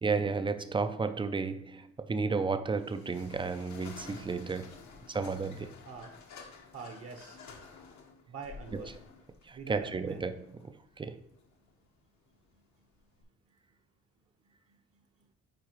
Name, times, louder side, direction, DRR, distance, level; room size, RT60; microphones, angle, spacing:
voice 1, 0.0-4.8 5.1-5.7 8.7-8.9 9.4-11.2, right 4 dB, 15° right, 0.4 m, -33 dB
sound 1, 2.8-13.2, left 5 dB, 70° left, 1.1 m, -52 dB
voice 2, 6.7-7.4 8.3-8.9 9.5-10.2, right 4 dB, 50° right, 0.9 m, -44 dB
8.6 x 4.7 x 3.0 m
cardioid pair, 90°, 30 cm